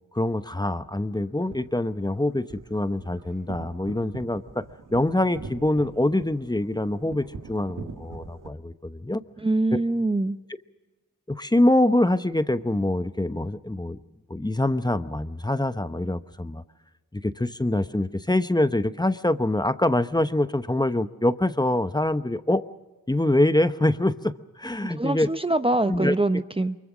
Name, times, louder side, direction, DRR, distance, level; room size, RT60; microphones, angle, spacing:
voice 1, 0.1-4.7 4.9-9.2 11.3-14.0 14.3-16.6 17.1-22.6 23.1-25.3 25.9-26.1, left 1 dB, 10° left, 12 dB, 0.9 m, -24 dB
sound 1, 1.3-8.5, right 4 dB, 70° right, 2.1 m, -43 dB
voice 2, 9.4-10.4 24.9-26.8, right 2 dB, 15° right, 10 dB, 0.8 m, -24 dB
24.0 x 22.0 x 6.3 m, 1.2 s
cardioid pair, 50°, 33 cm